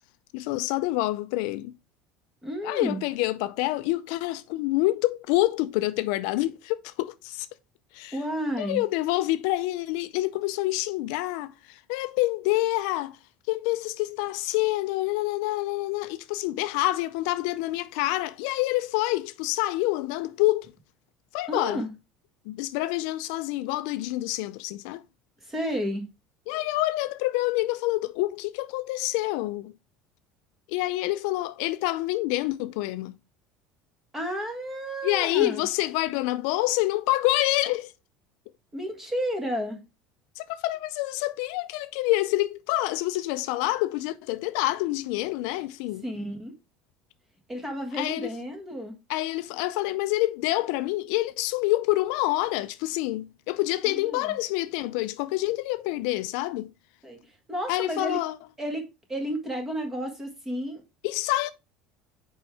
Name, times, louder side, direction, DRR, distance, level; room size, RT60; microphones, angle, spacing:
voice 1, 0.3-1.7 2.6-7.5 7.9-8.2 8.6-13.2 13.5-20.7 21.3-21.8 22.5-25.0 26.5-29.7 30.7-33.2 35.0-37.9 40.4-46.0 48.0-48.3 49.1-56.7 57.7-58.4 61.0-61.5, left 18 dB, 75° left, 0.4 m, -27 dB
voice 2, 2.4-3.0 8.1-8.8 21.5-21.9 25.4-26.1 34.1-35.7 38.7-39.8 46.0-46.5 47.5-48.9 53.8-54.4 57.0-58.2 58.6-60.8, equal, 10° right, 1.6 m, -32 dB
6.9 x 4.6 x 3.3 m
cardioid pair, 155°, 3 cm